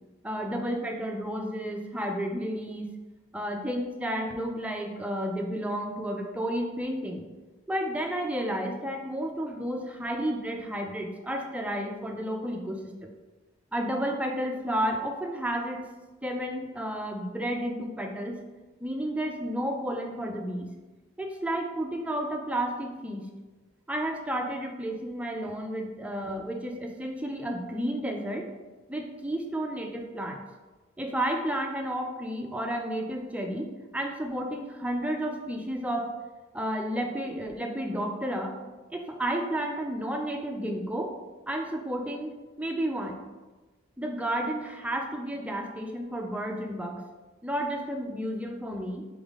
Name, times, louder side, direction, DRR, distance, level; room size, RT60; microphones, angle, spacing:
voice 1, 0.2-2.9 3.3-7.3 7.7-13.1 13.7-15.8 16.2-18.4 18.8-20.7 21.2-23.3 23.9-28.5 28.9-30.4 31.0-36.2 36.5-38.6 38.9-41.2 41.5-43.2 44.0-47.0 47.4-49.1, right 1 dB, 5° right, 2 dB, 0.4 m, -32 dB
4.0 x 3.5 x 3.6 m, 1.2 s
head